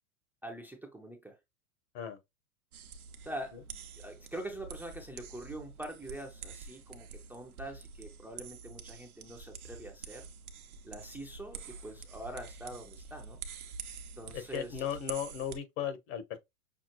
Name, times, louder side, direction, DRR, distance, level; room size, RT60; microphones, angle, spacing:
voice 1, 0.4-1.4 3.2-3.6 4.0-10.3 10.8-13.4 14.2-14.7, right 1 dB, 5° right, 0.5 m, -44 dB
sound 1, 2.7-15.6, right 5 dB, 85° right, 0.9 m, -47 dB
voice 2, 14.3-16.4, left 9 dB, 50° left, 1.2 m, -36 dB
5.9 x 2.0 x 2.9 m
hypercardioid pair, 105°, 43 cm